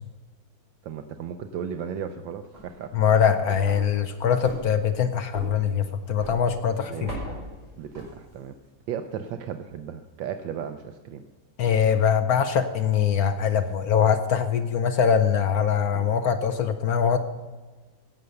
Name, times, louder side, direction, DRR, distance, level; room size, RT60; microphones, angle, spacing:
voice 1, 0.8-2.9 6.9-7.1 7.8-8.6 8.9-11.2 15.9-16.1, right 8 dB, 75° right, 8 dB, 1.3 m, -35 dB
sound 1, 2.3-8.6, right 1 dB, 30° right, 4.8 m, -42 dB
voice 2, 2.9-7.1 11.6-17.2, left 7 dB, 65° left, 9 dB, 1.0 m, -22 dB
sound 2, 3.2-3.9 6.8-7.5 9.1-9.2, equal, 30° left, 5.8 m, -43 dB
16.5 x 6.8 x 6.4 m, 1.3 s
omnidirectional pair, 2.2 m